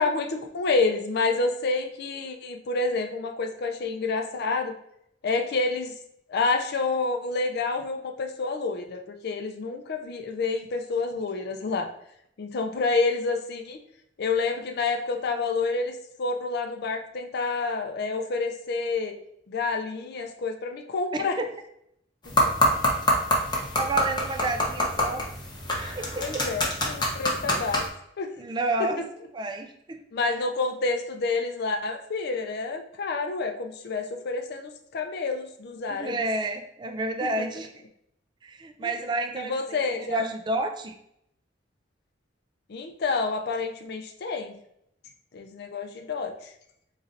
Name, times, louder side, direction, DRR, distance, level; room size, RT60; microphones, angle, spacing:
voice 1, 0.0-4.7 5.2-5.9 6.3-11.9 12.4-13.8 14.2-19.2 19.5-21.4 22.4-22.5 26.2-27.8 28.2-28.3 28.8-28.9 30.1-36.2 37.4-37.5 38.8-38.9 39.3-40.3 42.7-44.5 45.3-46.5, left 3 dB, 60° left, 4 dB, 0.4 m, -28 dB
voice 2, 21.1-21.4 23.8-25.2 26.0-26.4 28.4-29.0 29.3-30.0 35.9-37.7 38.4-41.0, right 2 dB, 25° right, 5 dB, 0.3 m, -30 dB
sound 1, 22.2-27.9, left 1 dB, 25° left, 0.7 m, -26 dB
4.0 x 3.1 x 2.5 m, 0.74 s
head